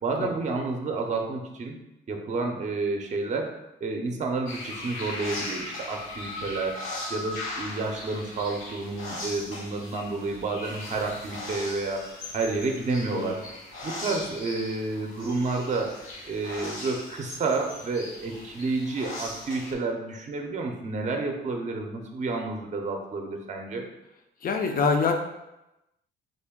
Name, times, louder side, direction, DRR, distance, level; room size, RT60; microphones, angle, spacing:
voice 1, 0.0-1.8 2.1-3.5 3.8-6.8 7.1-12.1 12.3-13.4 13.8-15.9 16.3-23.8, right 3 dB, 35° right, 3 dB, 0.6 m, -30 dB
sound 1, 4.5-19.7, left 2 dB, 85° left, 1.1 m, -38 dB
voice 2, 24.4-25.1, left 5 dB, 45° left, 4 dB, 0.5 m, -25 dB
3.8 x 2.2 x 3.5 m, 0.93 s
cardioid pair, 90°, 20 cm